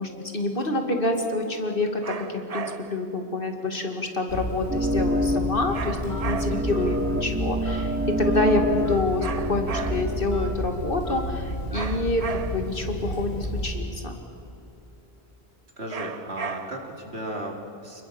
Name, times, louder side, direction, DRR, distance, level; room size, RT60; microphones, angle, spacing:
voice 1, 0.0-14.2, left 2 dB, 55° left, 4 dB, 2.8 m, -27 dB
sound 1, 2.0-3.1 5.7-6.8 9.2-10.3 11.7-12.8 15.9-17.0, right 6 dB, 40° right, 0.8 m, -35 dB
Telephone, 4.3-14.0, equal, 80° left, 4.1 m, -31 dB
sound 2, 4.7-10.5, equal, 10° right, 0.8 m, -28 dB
voice 2, 6.5-7.0 15.8-18.0, right 1 dB, 80° right, 1 dB, 3.5 m, -35 dB
29.5 x 21.0 x 7.2 m, 2.9 s
omnidirectional pair, 1.1 m